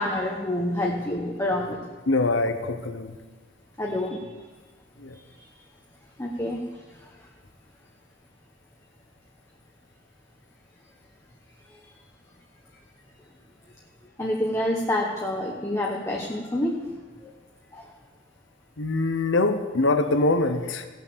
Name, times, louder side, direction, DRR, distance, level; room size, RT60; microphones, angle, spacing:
voice 1, 0.0-1.8 3.8-4.2 5.4-5.5 6.2-6.6 7.0-7.1 11.8-11.9 14.2-16.8 17.2-17.3 17.7-17.8, left 1 dB, 15° left, -1 dB, 1.0 m, -27 dB
voice 2, 2.1-3.2 5.0-5.2 18.8-20.9, left 2 dB, 90° left, 9 dB, 0.9 m, -24 dB
16.5 x 6.0 x 6.9 m, 1.3 s
head